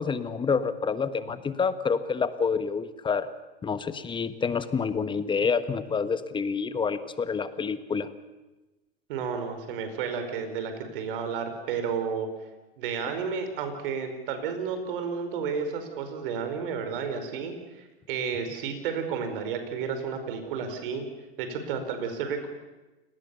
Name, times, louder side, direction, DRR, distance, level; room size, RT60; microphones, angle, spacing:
voice 1, 0.0-3.3 3.6-8.1, left 5 dB, 15° left, 12 dB, 1.4 m, -28 dB
voice 2, 9.1-12.3 12.8-21.0 21.4-22.5, right 6 dB, 65° right, 7 dB, 5.0 m, -32 dB
29.0 x 19.0 x 7.1 m, 1.1 s
hypercardioid pair, 110°, 30 cm